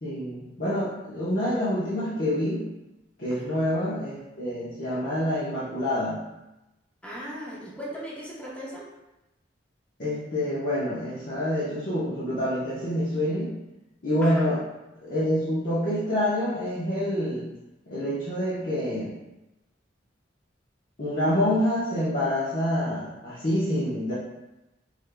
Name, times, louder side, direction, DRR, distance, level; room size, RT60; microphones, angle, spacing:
voice 1, 0.0-2.7 3.2-6.2 10.0-13.5 14.0-14.6 15.0-17.5 17.9-19.1 21.0-24.1, left 1 dB, 50° left, -11 dB, 1.0 m, -27 dB
voice 2, 7.0-8.8 14.2-14.3, equal, 5° left, -7 dB, 1.0 m, -38 dB
5.1 x 3.5 x 2.3 m, 0.98 s
head